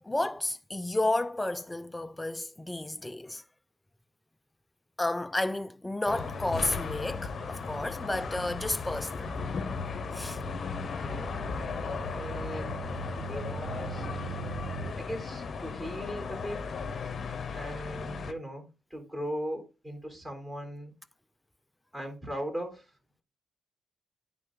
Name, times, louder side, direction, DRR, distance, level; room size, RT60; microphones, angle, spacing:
voice 1, 0.0-3.4 5.0-9.4 10.1-10.4, left 2 dB, 10° left, 0.5 m, -32 dB
sound 1, 6.1-18.3, left 5 dB, 45° left, 0.9 m, -36 dB
sound 2, 6.9-14.9, right 6 dB, 70° right, 1.1 m, -43 dB
voice 2, 10.8-11.4 11.9-14.1 14.9-16.6 17.5-20.9 21.9-22.9, equal, 15° right, 4.0 m, -39 dB
9.9 x 3.8 x 3.8 m
cardioid pair, 90°, 0 cm